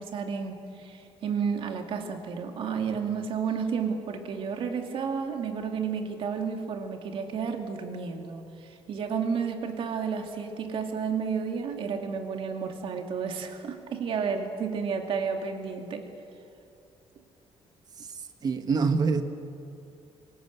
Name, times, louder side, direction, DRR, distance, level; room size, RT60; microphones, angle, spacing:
voice 1, 0.0-16.0, right 6 dB, 55° right, 4 dB, 2.4 m, -31 dB
voice 2, 18.4-19.2, right 4 dB, 40° right, 8 dB, 1.3 m, -24 dB
25.0 x 18.0 x 8.0 m, 2.5 s
cardioid pair, 165°, 11 cm